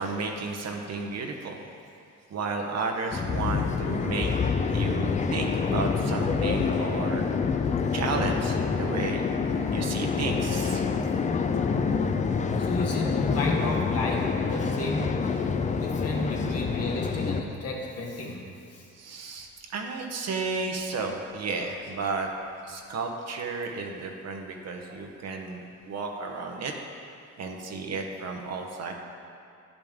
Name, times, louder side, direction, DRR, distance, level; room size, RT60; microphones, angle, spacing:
voice 1, 0.0-1.6 2.3-4.3 4.7-7.3 7.9-9.3 9.7-10.9 18.9-22.3 22.6-26.7 27.4-28.9, right 4 dB, 60° right, 2 dB, 0.9 m, -33 dB
sound 1, 3.1-17.4, left 5 dB, 25° left, 0.4 m, -27 dB
voice 2, 12.6-15.1 15.7-18.4 24.9-25.0, left 2 dB, 55° left, -1 dB, 1.4 m, -32 dB
10.5 x 5.2 x 3.5 m, 2.5 s
cardioid pair, 90°, 30 cm